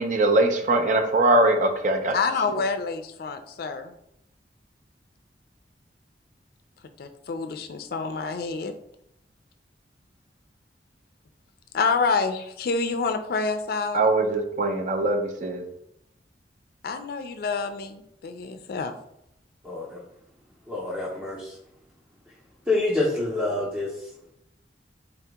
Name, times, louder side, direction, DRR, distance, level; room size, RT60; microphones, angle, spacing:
voice 1, 0.0-2.1 13.9-15.6, right 2 dB, 45° right, 4 dB, 0.6 m, -22 dB
voice 2, 2.1-3.9 7.0-8.7 11.7-14.1 16.8-18.9, left 4 dB, 55° left, 8 dB, 0.4 m, -27 dB
voice 3, 19.6-20.0 20.7-21.5 22.7-23.9, left 2 dB, 10° right, -5 dB, 0.7 m, -26 dB
3.9 x 2.8 x 3.4 m, 0.79 s
head